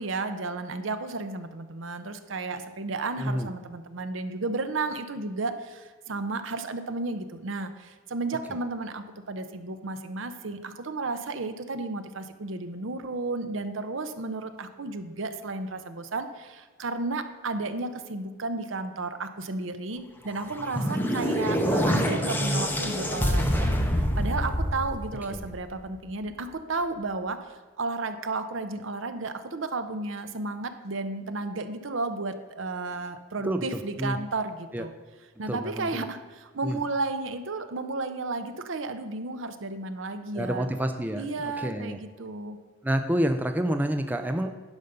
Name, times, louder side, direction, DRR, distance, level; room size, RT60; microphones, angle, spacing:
voice 1, 0.0-23.7 24.2-34.9 35.4-40.7 41.2-42.6, right 3 dB, 70° right, 9 dB, 0.7 m, -33 dB
voice 2, 3.2-3.5 25.3-25.5 33.4-34.2 34.7-34.9 35.5-36.1 36.6-36.8 40.3-42.0 42.8-44.5, equal, 10° right, 6 dB, 0.4 m, -28 dB
sound 1, 20.4-25.7, equal, 10° left, 0.8 m, -26 dB
10.5 x 5.3 x 6.7 m, 1.4 s
head